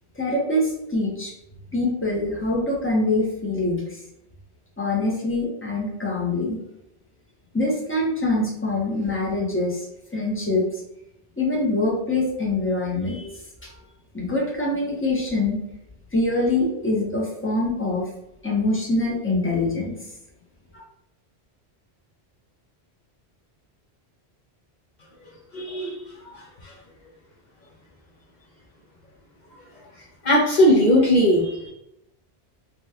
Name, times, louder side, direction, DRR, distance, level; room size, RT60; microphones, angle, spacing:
voice 1, 0.2-1.3 1.7-4.0 4.8-6.6 7.5-9.9 10.1-10.8 11.4-13.3 13.6-13.7 14.1-15.6 16.1-18.0 18.4-20.0, left 2 dB, 15° left, -3 dB, 0.6 m, -24 dB
voice 2, 25.5-26.0 30.2-31.7, equal, 50° left, -6 dB, 0.7 m, -18 dB
2.9 x 2.2 x 3.4 m, 0.83 s
omnidirectional pair, 1.1 m